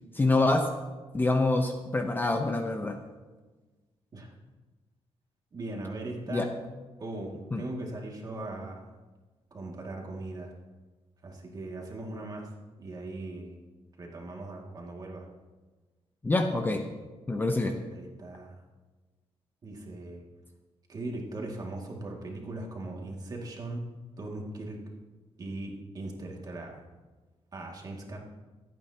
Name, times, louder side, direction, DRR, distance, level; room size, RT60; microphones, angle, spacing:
voice 1, 0.1-0.6 1.1-3.0 6.3-6.5 7.5-7.6 16.2-16.8 17.3-17.7, left 2 dB, 20° left, 4 dB, 0.8 m, -26 dB
voice 2, 5.5-6.5 7.0-8.9 9.5-10.5 11.2-12.5 12.8-13.6 14.0-15.3 17.9-18.6 19.6-20.2 20.9-23.8 24.2-24.8 25.4-26.8 27.5-28.2, right 2 dB, 35° right, 0 dB, 2.2 m, -39 dB
25.5 x 9.0 x 2.9 m, 1.3 s
wide cardioid pair, 155°, 11 cm